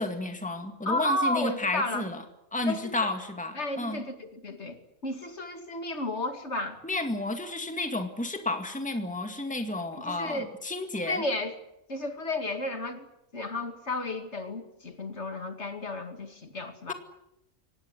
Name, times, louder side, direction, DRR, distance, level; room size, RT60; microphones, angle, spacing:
voice 1, 0.0-2.2 2.5-4.0 6.8-11.2, left 2 dB, 5° left, 6 dB, 2.1 m, -31 dB
voice 2, 0.8-2.0 2.6-3.1 3.5-6.8 9.9-10.5 11.1-11.6 11.9-13.1 13.3-16.9, left 2 dB, 50° left, 7 dB, 2.5 m, -32 dB
24.5 x 19.0 x 9.7 m, 0.85 s
omnidirectional pair, 1.5 m